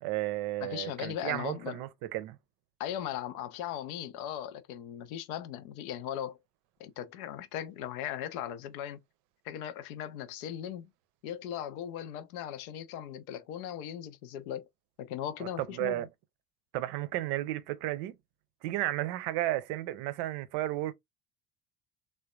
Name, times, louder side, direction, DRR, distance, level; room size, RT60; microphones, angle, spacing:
voice 1, 0.0-2.4 15.6-16.1 16.7-18.2 18.6-20.9, right 15 dB, 55° right, 0.6 m, -33 dB
voice 2, 0.6-1.8 2.8-6.4 6.8-9.0 9.4-10.9 11.2-14.7 15.0-16.1, left 10 dB, 65° left, 0.6 m, -38 dB
3.3 x 2.2 x 2.3 m
figure-of-eight pair, 55°, 47 cm